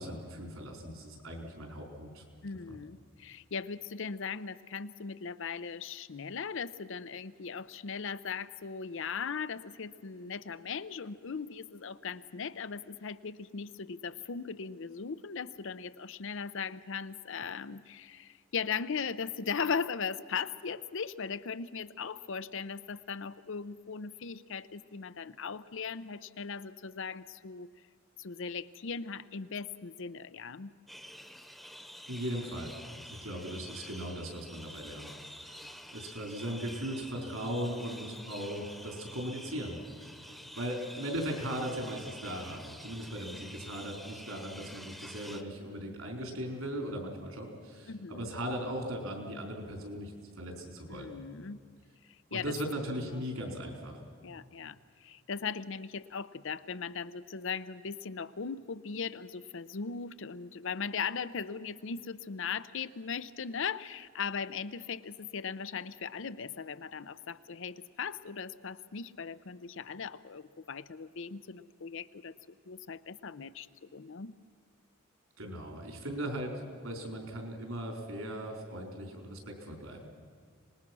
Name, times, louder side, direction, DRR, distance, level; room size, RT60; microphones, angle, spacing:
voice 1, 0.0-2.2 2.7-2.8 32.1-32.7 33.1-35.1 35.3-51.2 52.3-53.9 75.4-76.5 76.8-80.0, equal, 75° right, 2 dB, 4.5 m, -38 dB
voice 2, 2.4-27.7 28.2-30.7 47.9-48.3 50.9-51.6 52.3-52.5 53.1-53.2 54.2-72.3 72.7-74.3, left 6 dB, 60° left, 14 dB, 0.6 m, -38 dB
sound 1, 30.9-45.4, equal, ahead, 1.0 m, -48 dB
25.5 x 20.0 x 6.2 m, 2.1 s
head